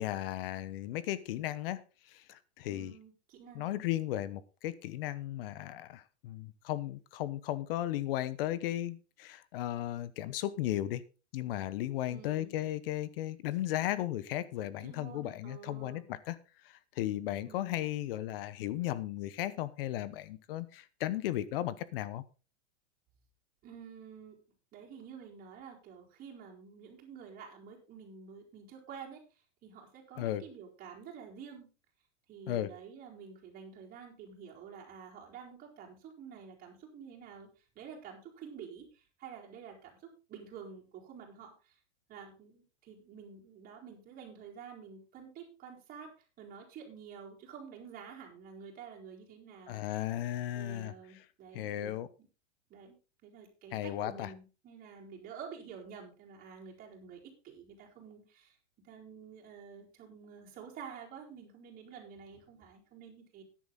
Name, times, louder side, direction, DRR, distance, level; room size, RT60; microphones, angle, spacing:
voice 1, 0.0-1.8 2.1-2.9 3.5-11.0 11.3-16.4 16.6-22.2 30.2-30.4 32.5-32.7 49.7-50.9 51.5-52.1 53.7-54.3, left 13 dB, 55° left, 1.1 m, -35 dB
voice 2, 2.7-3.9 12.1-12.6 14.6-16.1 17.5-17.8 23.6-24.4 24.7-29.2 29.6-31.7 32.3-37.5 37.8-41.8 42.1-46.1 46.4-49.9 50.5-51.9 52.7-63.4, right 6 dB, 25° right, 4.3 m, -49 dB
12.0 x 10.5 x 3.9 m
supercardioid pair, 150°, 34 cm